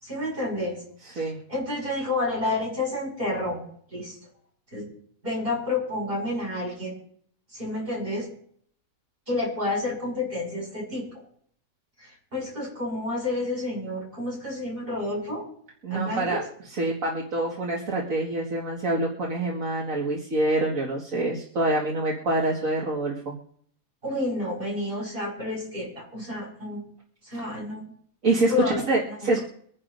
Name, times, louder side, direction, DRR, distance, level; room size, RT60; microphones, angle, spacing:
voice 1, 0.0-0.8 1.1-3.6 3.9-4.1 4.7-4.9 5.2-7.0 7.5-8.3 9.3-11.1 12.3-15.5 15.9-16.4 24.0-26.8 27.3-27.9 28.5-28.8, left 2 dB, 40° right, -4 dB, 6.4 m, -29 dB
voice 2, 1.0-1.4 15.8-23.3 28.2-29.4, right 2 dB, 65° right, -3 dB, 2.3 m, -26 dB
24.5 x 10.5 x 2.6 m, 0.63 s
omnidirectional pair, 1.5 m